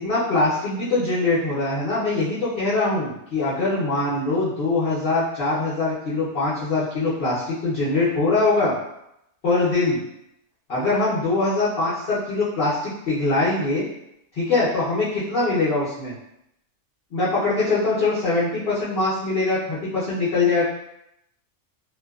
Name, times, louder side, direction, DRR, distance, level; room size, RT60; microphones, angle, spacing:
voice 1, 0.0-8.7 9.4-10.0 10.7-13.8 14.4-16.1 17.1-20.6, left 3 dB, 50° left, -11 dB, 0.8 m, -22 dB
2.7 x 2.2 x 2.3 m, 0.80 s
omnidirectional pair, 1.5 m